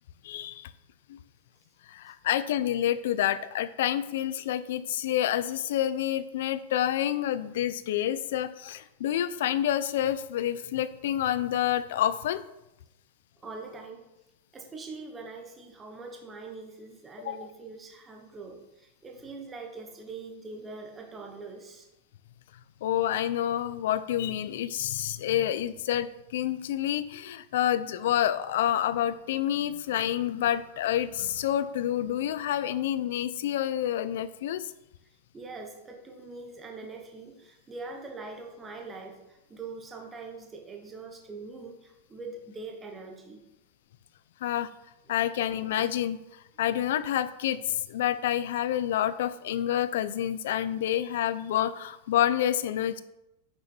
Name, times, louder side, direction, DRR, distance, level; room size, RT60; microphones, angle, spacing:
voice 1, 0.2-0.7 1.1-1.2 1.9-12.4 17.2-17.5 22.8-34.7 44.4-44.7 45.1-53.0, left 11 dB, 65° left, 14 dB, 0.6 m, -28 dB
voice 2, 13.4-14.1 14.5-21.9 35.3-43.5 45.1-45.2, right 3 dB, 10° right, 2 dB, 1.1 m, -43 dB
10.5 x 6.9 x 4.5 m, 0.89 s
supercardioid pair, 170°, 0 cm